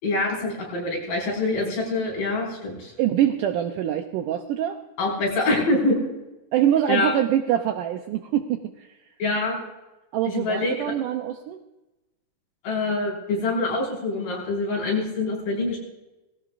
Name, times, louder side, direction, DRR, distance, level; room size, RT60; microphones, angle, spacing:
voice 1, 0.0-2.9 5.0-6.1 6.9-7.1 9.2-9.6 10.2-10.9 12.6-15.8, left 2 dB, 65° left, -3 dB, 6.6 m, -25 dB
voice 2, 3.0-4.8 6.5-8.9 10.1-11.6, right 11 dB, 85° right, 6 dB, 1.9 m, -24 dB
19.0 x 16.0 x 2.5 m, 1.0 s
omnidirectional pair, 4.4 m